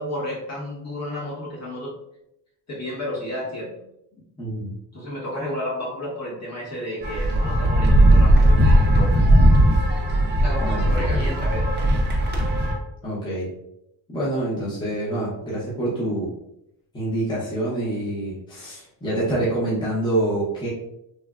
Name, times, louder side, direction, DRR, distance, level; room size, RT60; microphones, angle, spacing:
voice 1, 0.0-2.0 2.7-3.7 4.1-4.2 4.9-9.2 10.4-11.8, left 1 dB, 35° left, -4 dB, 1.0 m, -32 dB
voice 2, 4.4-4.7 10.6-11.1 13.0-13.5 14.1-16.3 16.9-20.7, right 1 dB, 10° left, -8 dB, 0.7 m, -26 dB
sound 1, 7.0-12.7, right 1 dB, 25° right, 0.4 m, -17 dB
3.2 x 2.2 x 2.3 m, 0.82 s
cardioid pair, 140°, 46 cm